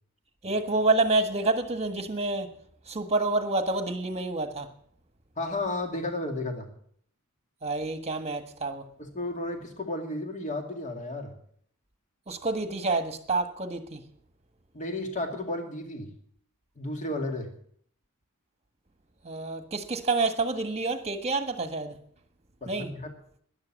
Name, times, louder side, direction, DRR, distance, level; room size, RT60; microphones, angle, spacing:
voice 1, 0.4-2.5 2.9-4.7 7.6-8.8 12.3-14.0 19.2-21.9 22.7-22.9, right 3 dB, 30° right, 1.4 m, -28 dB
voice 2, 5.4-6.7 9.0-11.3 14.7-16.1 16.8-17.5 22.6-23.1, left 2 dB, 35° left, 2.4 m, -33 dB
12.5 x 11.0 x 7.5 m
head